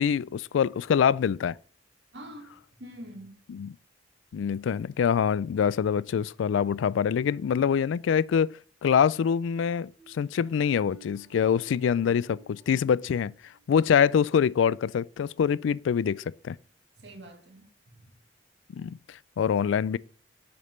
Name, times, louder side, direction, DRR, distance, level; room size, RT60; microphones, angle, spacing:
voice 1, 0.0-1.6 3.5-3.7 4.3-8.5 8.8-13.3 13.7-16.6 18.7-20.0, left 7 dB, 85° left, 0.3 m, -25 dB
voice 2, 2.1-3.4 11.8-12.2 17.0-18.1, right 1 dB, 65° right, 1.6 m, -46 dB
sound 1, 9.3-15.0 15.4-15.7 16.2-16.4, right 4 dB, ahead, 1.2 m, -59 dB
6.7 x 5.3 x 4.3 m
head